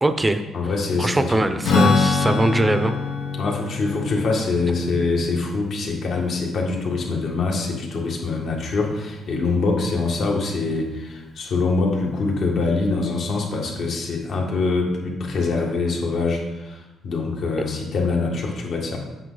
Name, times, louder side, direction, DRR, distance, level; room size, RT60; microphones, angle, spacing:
voice 1, 0.0-0.4 1.0-2.9, right 2 dB, 15° right, 10 dB, 0.6 m, -21 dB
voice 2, 0.5-1.5 3.4-19.0, left 3 dB, 65° left, 0 dB, 1.7 m, -24 dB
Strum, 1.6-7.3, left 4 dB, 85° left, 1.0 m, -25 dB
7.8 x 6.3 x 4.0 m, 1.1 s
cardioid pair, 90°, 0 cm